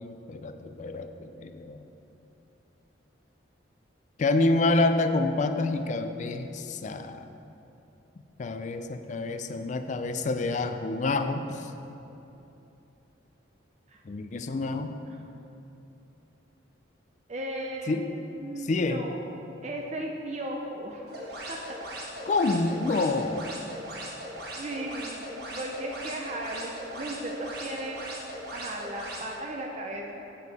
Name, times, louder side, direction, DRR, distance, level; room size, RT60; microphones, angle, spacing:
voice 1, 0.0-1.9 4.2-7.3 8.4-11.7 14.0-15.0 17.9-18.1 18.6-19.0 22.3-23.6, left 2 dB, 40° left, 8 dB, 0.3 m, -28 dB
voice 2, 17.3-18.0 18.4-19.2 19.6-21.6 24.6-25.2 25.5-30.2, right 1 dB, 35° right, 0 dB, 0.5 m, -36 dB
sound 1, 21.1-29.2, equal, 55° right, 1.2 m, -39 dB
6.9 x 6.3 x 4.1 m, 2.9 s
head